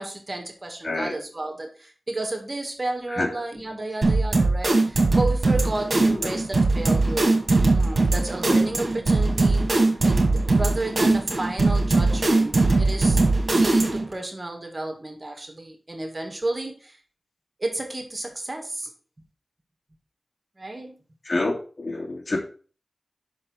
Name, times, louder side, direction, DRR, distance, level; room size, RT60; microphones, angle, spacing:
voice 1, 0.0-7.3 7.7-9.8 10.0-13.2 13.5-17.0 17.6-18.9 20.6-21.0, right 2 dB, 40° right, 3 dB, 2.0 m, -32 dB
sound 1, 4.0-14.1, right 2 dB, 60° right, 2.1 m, -20 dB
voice 2, 21.2-22.4, left 2 dB, 65° left, 0 dB, 2.8 m, -27 dB
5.7 x 5.2 x 6.4 m, 0.39 s
wide cardioid pair, 50°, 0 cm